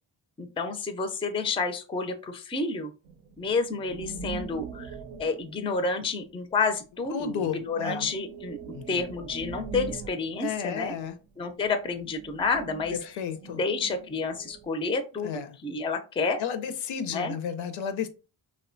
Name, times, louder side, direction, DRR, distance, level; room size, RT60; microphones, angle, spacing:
voice 1, 0.4-2.9 3.4-10.9 11.4-13.0 13.5-16.4 17.1-17.3, left 4 dB, 15° left, 0.3 m, -30 dB
sound 1, 3.0-6.6 7.1-11.2 11.5-14.7, right 4 dB, 85° right, 0.6 m, -42 dB
voice 2, 7.1-8.1 8.7-9.0 10.4-11.2 12.9-13.6 15.2-15.6 16.4-18.1, left 8 dB, 70° left, 0.5 m, -32 dB
2.6 x 2.1 x 2.5 m
cardioid pair, 55°, 49 cm